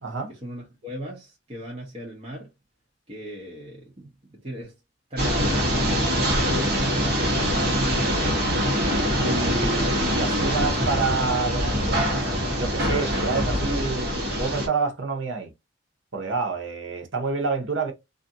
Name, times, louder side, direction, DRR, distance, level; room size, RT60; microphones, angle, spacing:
voice 1, 0.3-2.5 3.1-4.7 5.1-6.7 7.3-8.6, right 1 dB, 35° right, 0.8 m, -36 dB
sound 1, 5.2-14.7, equal, 55° right, 1.1 m, -24 dB
voice 2, 9.2-12.0 12.6-15.5 16.1-17.9, right 4 dB, 80° right, 0.7 m, -28 dB
2.6 x 2.5 x 2.5 m
head